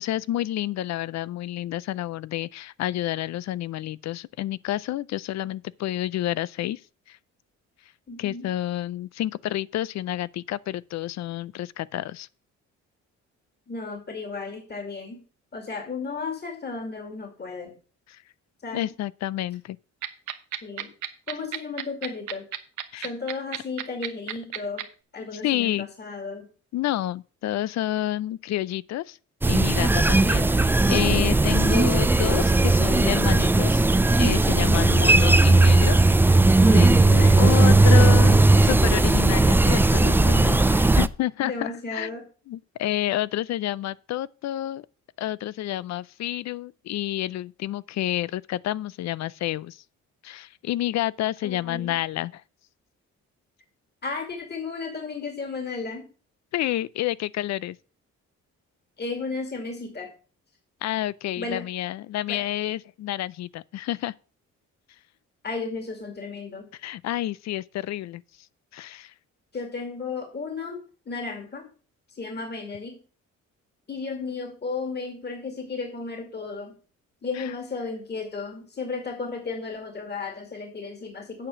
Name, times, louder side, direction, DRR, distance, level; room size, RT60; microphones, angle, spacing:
voice 1, 0.0-6.8 7.1-7.2 8.2-12.3 18.1-18.2 18.7-19.8 22.9-23.1 25.3-25.9 26.7-29.2 29.5-30.5 30.9-33.8 34.2-36.0 36.2-36.4 36.7-42.1 42.5-44.9 45.2-49.8 50.2-52.4 56.5-57.8 60.8-64.1 66.8-68.2 68.7-69.1 77.4-77.5, left 14 dB, 65° left, 0.5 m, -29 dB
voice 2, 8.1-8.4 13.7-15.2 15.5-17.8 18.6-18.9 20.6-20.9 21.3-22.5 23.0-24.9 25.1-26.5 30.1-30.6 37.1-37.8 41.4-42.3 51.4-52.0 54.0-56.1 59.0-60.1 61.4-61.7 62.3-62.5 65.4-66.7 69.5-70.8 71.1-71.7 72.1-73.0 73.9-76.7 77.2-81.5, left 4 dB, 35° left, 2.4 m, -34 dB
sound 1, 20.0-24.8, right 12 dB, 75° right, 1.1 m, -31 dB
sound 2, 29.4-41.1, right 2 dB, 5° right, 0.3 m, -17 dB
8.7 x 5.0 x 7.2 m
cardioid pair, 90°, 30 cm